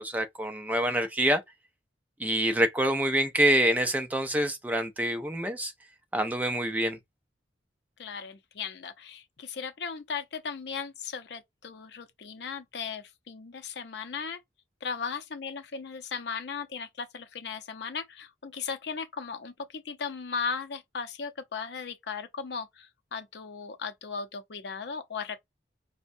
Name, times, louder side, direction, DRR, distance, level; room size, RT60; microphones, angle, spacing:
voice 1, 0.0-1.4 2.2-5.7 6.1-7.0, right 1 dB, 10° right, 0.4 m, -26 dB
voice 2, 8.0-14.4 14.8-25.4, left 5 dB, 60° left, 0.5 m, -37 dB
4.4 x 2.1 x 2.6 m
head